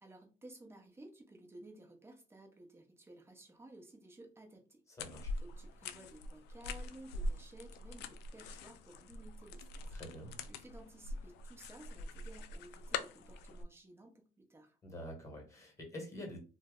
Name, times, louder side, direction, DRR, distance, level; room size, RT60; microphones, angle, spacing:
voice 1, 0.0-4.8 5.3-10.0 10.5-14.8, right 2 dB, 15° right, 2 dB, 0.8 m, -56 dB
sound 1, 5.0-13.6, left 2 dB, 85° left, 0.4 m, -43 dB
voice 2, 5.0-5.3 9.9-10.3 14.8-16.4, equal, 15° left, 1 dB, 1.3 m, -46 dB
2.6 x 2.1 x 3.6 m, 0.36 s
cardioid pair, 110°, 17 cm